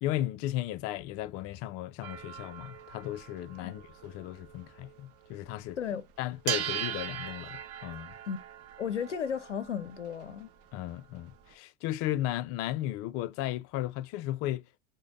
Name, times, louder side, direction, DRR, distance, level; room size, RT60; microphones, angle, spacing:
voice 1, 0.0-5.8 6.2-8.1 10.7-14.8, left 14 dB, 45° left, 0.4 m, -35 dB
sound 1, 2.0-5.5 5.8-5.9 6.4-11.5, right 10 dB, 40° right, 0.7 m, -40 dB
voice 2, 8.8-10.5, left 7 dB, 85° left, 0.6 m, -34 dB
4.9 x 2.1 x 3.6 m
figure-of-eight pair, 75°, 35 cm